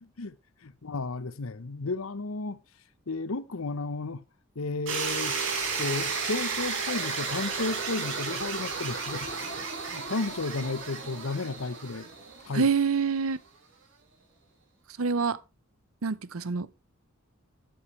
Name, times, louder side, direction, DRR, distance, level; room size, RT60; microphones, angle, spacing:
voice 1, 0.0-0.4 0.6-2.6 3.1-4.2 4.6-5.4 5.8-12.1 12.4-12.7, left 3 dB, 75° left, 0.9 m, -33 dB
sound 1, 4.9-12.9, right 5 dB, 60° right, 5.6 m, -33 dB
voice 2, 12.5-13.4 15.0-15.4 16.0-16.9, right 5 dB, 75° right, 0.7 m, -26 dB
12.5 x 11.5 x 3.2 m
head